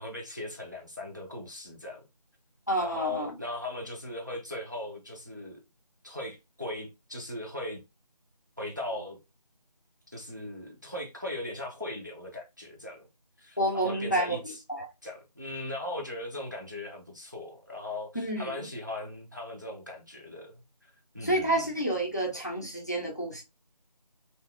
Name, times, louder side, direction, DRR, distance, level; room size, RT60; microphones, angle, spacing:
voice 1, 0.0-2.0 2.8-5.6 6.0-7.8 8.6-9.2 10.1-13.1 13.4-14.6 15.0-20.6 21.1-21.7, left 1 dB, 30° right, 0.5 m, -38 dB
voice 2, 2.7-3.3 13.6-14.4 14.7-14.9 18.1-18.7 21.2-23.4, right 1 dB, 25° left, 0.5 m, -29 dB
2.8 x 2.3 x 3.2 m
figure-of-eight pair, 170°, 21 cm